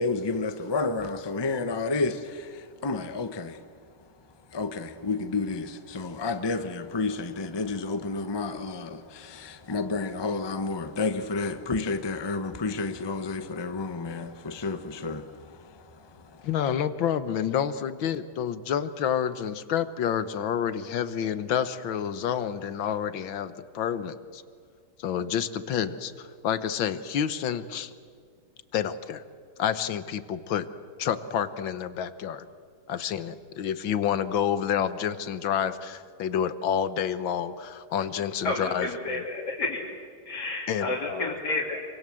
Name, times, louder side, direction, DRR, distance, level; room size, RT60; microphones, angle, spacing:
voice 1, 0.0-3.6 4.5-16.5, left 3 dB, 15° left, 0.9 m, -31 dB
voice 2, 16.4-24.4 25.0-27.9 28.7-29.2 29.6-30.7 31.0-32.5 32.9-39.2 40.7-41.3, left 8 dB, 70° left, 1.8 m, -29 dB
voice 3, 38.4-39.8 40.3-41.8, left 2 dB, 50° left, 3.5 m, -30 dB
27.0 x 25.0 x 7.7 m
omnidirectional pair, 2.3 m